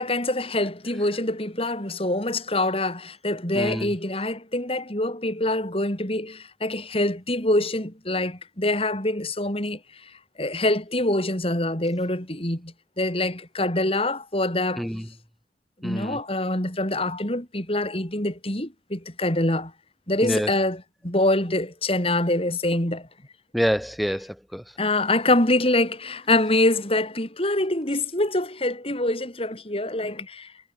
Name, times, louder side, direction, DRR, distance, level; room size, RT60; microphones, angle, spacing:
voice 1, 0.0-9.8 10.4-14.9 15.8-19.7 20.1-23.1 24.8-30.5, left 1 dB, 35° left, 5.4 m, -25 dB
voice 2, 3.5-3.9 14.8-15.0 15.8-16.2 20.2-20.5 23.5-24.6, equal, ahead, 4.8 m, -26 dB
head